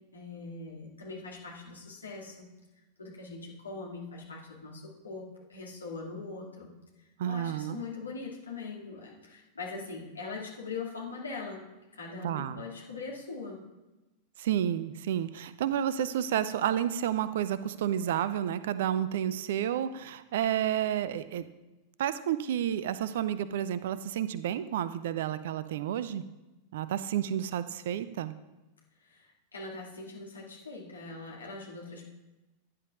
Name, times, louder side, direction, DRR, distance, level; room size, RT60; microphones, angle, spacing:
voice 1, 0.1-2.5 3.0-6.7 7.2-13.6 29.0-32.0, left 4 dB, 75° left, -2 dB, 2.3 m, -41 dB
voice 2, 7.2-7.8 12.2-12.6 14.4-21.5 22.0-26.2 26.7-28.3, right 10 dB, 55° right, 14 dB, 0.5 m, -30 dB
15.0 x 10.0 x 2.5 m, 1.1 s
figure-of-eight pair, 90°, 0 cm